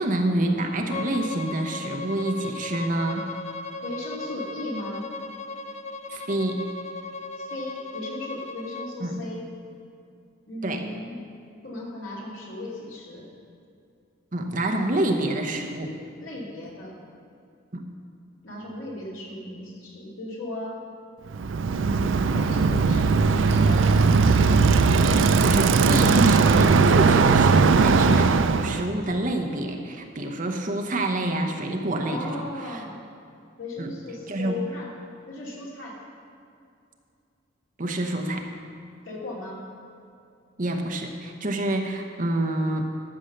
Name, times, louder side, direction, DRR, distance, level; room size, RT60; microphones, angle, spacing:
voice 1, 0.0-3.3 6.1-6.6 9.0-9.2 10.6-10.8 14.3-15.9 17.7-17.9 25.4-28.3 28.6-32.8 33.8-33.9 34.3-34.6 37.8-38.5 40.6-42.8, right 1 dB, 40° right, 3 dB, 1.0 m, -27 dB
Bowed string instrument, 0.9-8.9, left 3 dB, 35° left, 0.6 m, -36 dB
voice 2, 3.8-5.1 7.4-9.5 10.5-11.2 11.6-13.3 16.2-17.0 18.4-20.8 21.7-23.9 32.0-33.0 33.6-34.9 35.3-36.0 39.1-39.6, left 1 dB, 90° left, -4 dB, 2.8 m, -36 dB
Bicycle, 21.3-28.8, right 4 dB, 75° right, 0.5 m, -19 dB
12.5 x 6.5 x 6.6 m, 2.5 s
head